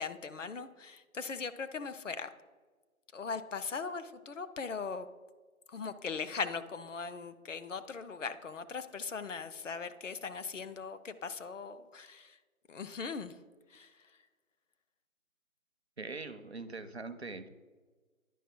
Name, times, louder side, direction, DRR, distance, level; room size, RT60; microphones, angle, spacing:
voice 1, 0.0-2.3 3.1-5.1 5.7-12.4 12.7-13.3 13.7-13.9, left 5 dB, 60° left, 11 dB, 0.6 m, -39 dB
voice 2, 16.0-17.5, right 3 dB, 50° right, 10 dB, 0.5 m, -42 dB
10.0 x 5.1 x 3.7 m, 1.4 s
figure-of-eight pair, 165°, 42 cm